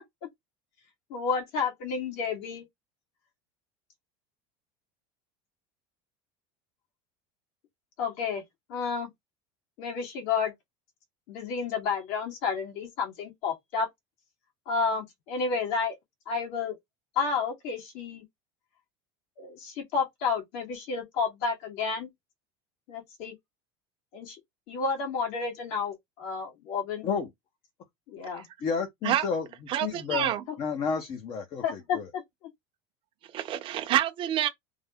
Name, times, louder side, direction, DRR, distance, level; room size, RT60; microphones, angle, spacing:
voice 1, 1.1-2.6 8.0-8.4 8.7-9.1 9.8-10.5 11.3-13.9 14.7-16.0 16.3-16.8 17.2-18.2 19.4-22.1 22.9-23.3 24.1-24.4 24.7-27.1 28.1-28.5 31.6-32.2, left 5 dB, 60° left, 1.8 m, -31 dB
voice 2, 28.6-29.5 29.8-32.1, left 6 dB, 40° left, 0.8 m, -31 dB
voice 3, 29.7-30.4 33.3-34.5, right 12 dB, 40° right, 0.7 m, -27 dB
3.5 x 2.1 x 3.5 m
supercardioid pair, 140°, 14 cm